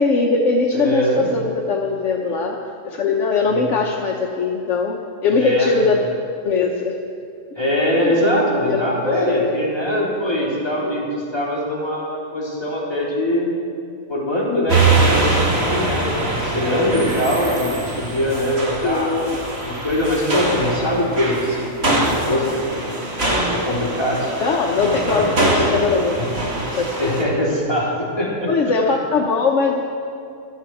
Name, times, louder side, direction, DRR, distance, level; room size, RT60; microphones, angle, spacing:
voice 1, 0.0-2.6 2.8-6.0 6.4-7.0 8.0-8.2 8.6-9.5 18.8-19.4 24.4-26.3 26.7-27.1 28.5-29.8, left 4 dB, 65° left, 1 dB, 1.2 m, -20 dB
voice 2, 0.7-1.3 3.4-3.6 5.3-5.7 7.6-13.5 14.1-17.7 18.0-22.9 23.5-24.3 24.8-24.9 26.2-26.3 27.0-28.5, equal, 20° left, -7 dB, 3.8 m, -22 dB
sound 1, 14.7-27.2, right 2 dB, 50° right, 2.1 m, -23 dB
16.0 x 12.5 x 4.8 m, 2.6 s
omnidirectional pair, 1.4 m